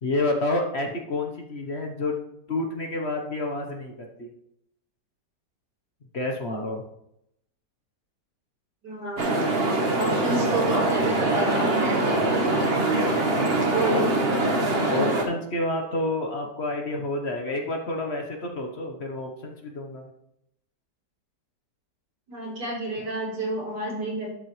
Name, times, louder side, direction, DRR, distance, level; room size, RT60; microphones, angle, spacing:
voice 1, 0.0-2.2 2.5-4.3 6.1-6.9 13.8-14.0 14.9-20.1, left 2 dB, 45° left, 2 dB, 1.2 m, -29 dB
voice 2, 8.8-9.4 10.0-13.1 13.6-14.2 22.3-24.3, right 1 dB, 85° right, -5 dB, 4.8 m, -30 dB
sound 1, 9.2-15.2, right 2 dB, 40° right, 1.5 m, -23 dB
11.5 x 7.6 x 3.3 m, 0.79 s
omnidirectional pair, 1.8 m